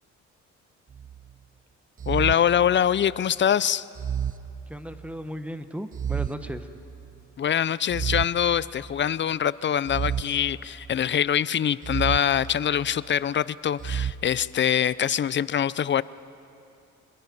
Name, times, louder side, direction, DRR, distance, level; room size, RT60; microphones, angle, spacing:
sound 1, 0.9-1.3 2.0-3.3 4.0-5.2 5.9-7.2 7.9-9.2 9.9-11.2 11.8-13.1 13.8-14.1, right 8 dB, 30° right, 0.5 m, -32 dB
voice 1, 2.1-3.9 7.4-16.0, left 9 dB, 40° left, 19 dB, 0.5 m, -24 dB
voice 2, 4.7-6.7, equal, 5° right, 9 dB, 1.2 m, -36 dB
28.0 x 21.5 x 5.4 m, 2.7 s
cardioid pair, 90°, 30 cm